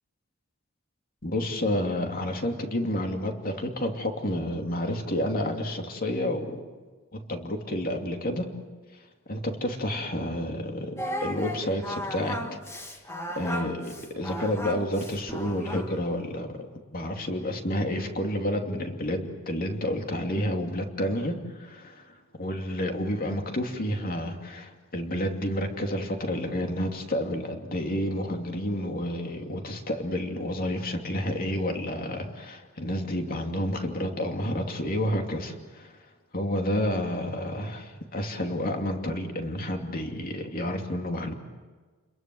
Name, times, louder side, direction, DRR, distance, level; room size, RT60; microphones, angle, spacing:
voice 1, 1.2-6.6 7.1-8.5 9.3-12.4 13.4-16.7 16.9-35.9 36.3-41.3, left 1 dB, 45° left, 3 dB, 2.7 m, -30 dB
Singing, 11.0-16.0, left 1 dB, 15° left, 1.8 m, -35 dB
30.0 x 22.0 x 7.8 m, 1.4 s
head